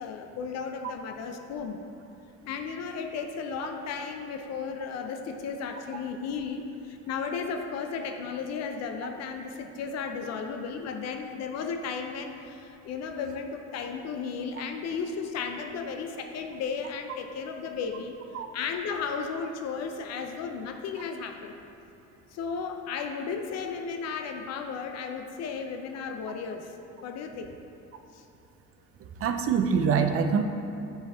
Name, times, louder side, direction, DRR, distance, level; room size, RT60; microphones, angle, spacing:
voice 1, 0.0-1.8 2.4-18.1 18.5-21.6 22.3-27.5 28.1-28.2, left 5 dB, 60° left, 5 dB, 0.6 m, -34 dB
voice 2, 29.2-30.4, right 6 dB, 50° right, 6 dB, 0.5 m, -24 dB
9.4 x 4.5 x 3.5 m, 3.0 s
cardioid pair, 155°, 30 cm